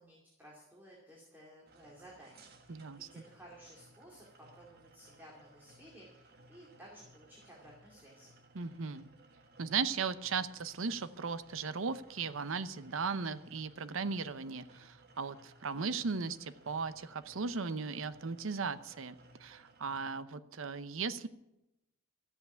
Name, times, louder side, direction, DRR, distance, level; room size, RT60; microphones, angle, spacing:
voice 1, 0.0-4.3 4.5-8.3, equal, 10° right, -3 dB, 2.6 m, -56 dB
sound 1, 1.7-20.1, right 2 dB, 50° right, 1.5 m, -61 dB
voice 2, 2.7-3.2 8.5-9.1 9.6-21.3, right 5 dB, 75° right, 13 dB, 0.7 m, -37 dB
13.5 x 8.1 x 9.3 m, 0.90 s
head